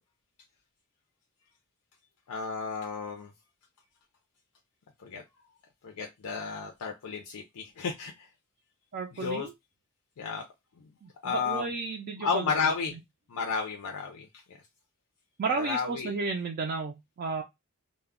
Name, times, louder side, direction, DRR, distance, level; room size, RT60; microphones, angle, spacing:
voice 1, 2.3-3.3 5.0-5.2 5.8-8.3 9.1-9.5 10.2-10.4 11.2-11.7 12.2-12.9 13.3-14.6 15.5-16.1, left 5 dB, 80° left, 2 dB, 0.5 m, -32 dB
voice 2, 8.9-9.5 11.0-13.0 15.4-17.4, right 4 dB, 45° right, 1 dB, 0.3 m, -33 dB
2.2 x 2.0 x 3.5 m, 0.20 s
head